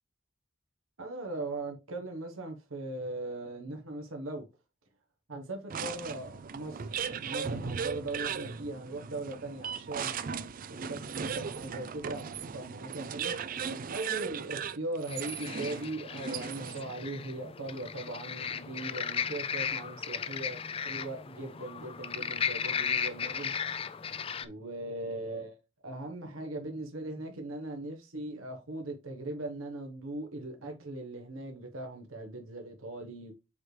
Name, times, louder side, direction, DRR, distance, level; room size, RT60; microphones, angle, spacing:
voice 1, 1.0-4.4 5.3-6.9 7.2-10.3 10.7-13.3 13.9-23.5 24.4-25.6 25.8-33.3, right 2 dB, 85° right, 1.3 m, -39 dB
sound 1, 5.7-17.0, right 6 dB, 40° right, 0.4 m, -37 dB
sound 2, 15.1-24.5, left 7 dB, 25° left, 0.4 m, -36 dB
7.5 x 4.6 x 3.3 m
head